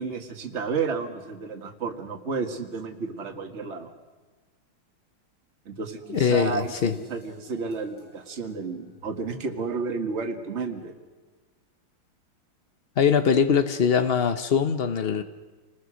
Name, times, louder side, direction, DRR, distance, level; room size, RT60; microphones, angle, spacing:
voice 1, 0.0-3.9 5.7-10.9, right 4 dB, 35° right, 5 dB, 1.9 m, -31 dB
sound 1, 6.0-11.2, equal, 60° left, 6.7 m, -53 dB
voice 2, 6.1-6.9 13.0-15.2, left 7 dB, 90° left, 9 dB, 0.5 m, -22 dB
28.5 x 20.5 x 6.4 m, 1.3 s
omnidirectional pair, 2.3 m